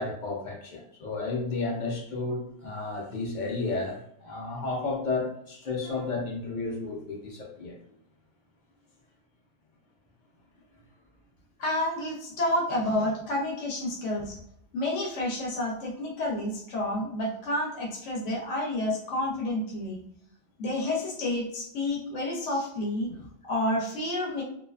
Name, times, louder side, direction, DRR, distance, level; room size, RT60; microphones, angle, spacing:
voice 1, 0.0-7.8, left 3 dB, 55° left, 0 dB, 0.6 m, -32 dB
voice 2, 11.6-14.4 14.7-20.0 20.6-24.4, left 1 dB, 85° left, -2 dB, 1.0 m, -30 dB
2.4 x 2.3 x 2.3 m, 0.74 s
omnidirectional pair, 1.2 m